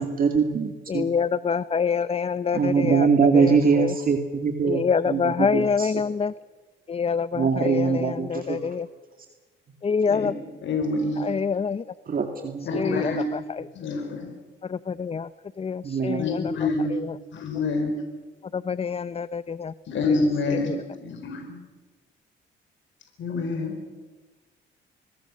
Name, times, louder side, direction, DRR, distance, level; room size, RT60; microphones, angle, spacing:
voice 1, 0.0-1.1 2.5-5.9 7.4-8.6 12.1-13.0 15.8-16.2, right 5 dB, 45° right, 4 dB, 2.5 m, -23 dB
voice 2, 0.9-4.0 4.6-6.3 6.9-8.9 9.8-10.3 11.2-11.8 12.3-13.7 14.6-15.3 15.6-17.2 18.5-19.7 20.1-20.8, left 6 dB, 30° left, 16 dB, 0.6 m, -27 dB
voice 3, 10.6-11.3 12.6-13.3 13.7-14.3 16.2-16.9 17.3-18.0 19.9-20.7 21.0-21.6 23.2-23.8, left 3 dB, 70° left, 4 dB, 4.6 m, -26 dB
26.5 x 21.0 x 6.5 m, 1.3 s
cardioid pair, 90°, 20 cm